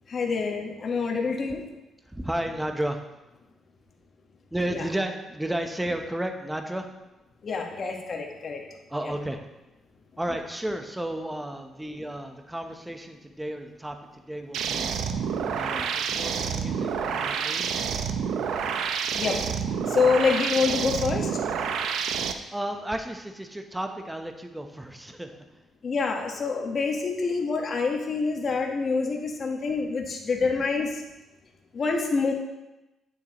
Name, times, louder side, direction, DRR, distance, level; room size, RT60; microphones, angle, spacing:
voice 1, 0.1-1.6 4.7-4.8 7.4-8.6 19.2-19.4 19.9-21.3 25.8-31.0 31.7-32.3, left 4 dB, 50° left, 1 dB, 1.4 m, -26 dB
voice 2, 2.1-3.0 4.5-6.9 8.9-9.4 10.2-14.9 15.4-17.7 20.0-20.1 22.5-25.4, right 1 dB, 10° right, 5 dB, 0.9 m, -33 dB
sound 1, 14.5-22.3, right 7 dB, 75° right, 0.6 m, -28 dB
8.7 x 7.6 x 3.0 m, 1.0 s
cardioid pair, 90°, 0 cm